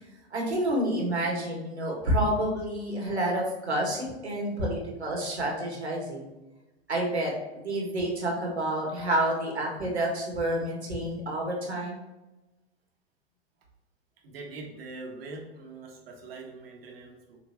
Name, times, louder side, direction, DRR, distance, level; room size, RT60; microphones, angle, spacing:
voice 1, 0.3-6.3 6.9-12.0, right 1 dB, 85° right, -1 dB, 2.2 m, -29 dB
voice 2, 14.2-17.4, right 3 dB, 65° right, 0 dB, 1.8 m, -43 dB
7.2 x 4.3 x 3.3 m, 1.0 s
figure-of-eight pair, 95°, 32 cm